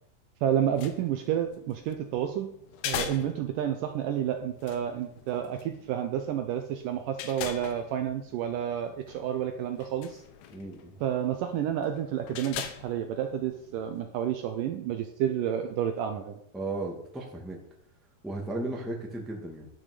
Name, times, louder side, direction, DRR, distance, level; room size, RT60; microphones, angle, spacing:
voice 1, 0.4-2.5 2.8-10.2 11.0-16.4, right 10 dB, 80° right, 6 dB, 2.0 m, -30 dB
sound 1, 0.5-14.0, left 9 dB, 80° left, 2.7 m, -43 dB
voice 2, 10.5-10.9 16.5-17.6 18.2-19.7, right 2 dB, ahead, -1 dB, 0.6 m, -35 dB
10.5 x 6.2 x 6.6 m, 0.70 s
omnidirectional pair, 4.5 m